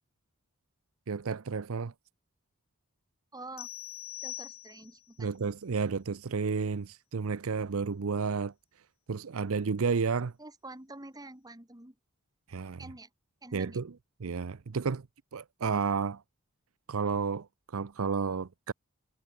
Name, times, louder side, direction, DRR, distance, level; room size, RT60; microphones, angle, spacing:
voice 1, 1.1-1.9 5.2-8.5 9.1-10.3 12.5-12.8 13.5-15.1 15.3-16.2 16.9-18.7, right 5 dB, 70° right, 0.6 m, -31 dB
voice 2, 3.3-3.7 4.2-5.3 10.4-12.0 12.8-13.1 13.4-13.8, right 2 dB, 20° right, 2.4 m, -47 dB
sound 1, 3.6-5.1, left 13 dB, 70° left, 1.5 m, -42 dB
head